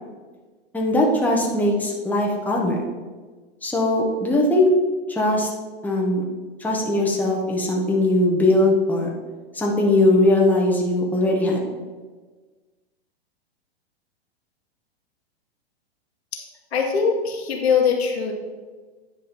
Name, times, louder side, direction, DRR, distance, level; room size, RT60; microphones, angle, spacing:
voice 1, 0.7-2.8 3.6-4.7 5.1-5.5 5.8-6.2 6.6-9.1 9.5-11.7, left 1 dB, 5° left, -2 dB, 1.4 m, -20 dB
voice 2, 16.7-18.3, left 6 dB, 75° left, 1 dB, 1.7 m, -21 dB
10.0 x 5.0 x 4.4 m, 1.4 s
hypercardioid pair, 110°, 32 cm